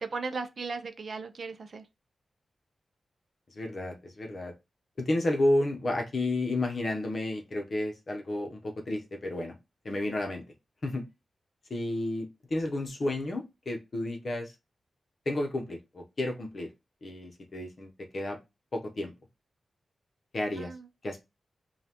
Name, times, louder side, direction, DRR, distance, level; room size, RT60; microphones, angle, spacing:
voice 1, 0.0-1.8 20.6-20.9, right 4 dB, 45° right, 0.5 m, -36 dB
voice 2, 3.6-4.5 5.0-9.6 9.8-10.4 10.8-11.0 11.7-14.5 15.3-16.7 17.0-18.4 18.7-19.1 20.3-20.7 21.0-21.2, left 1 dB, 40° left, 0.8 m, -31 dB
5.3 x 2.3 x 2.9 m
wide cardioid pair, 180°, 0 cm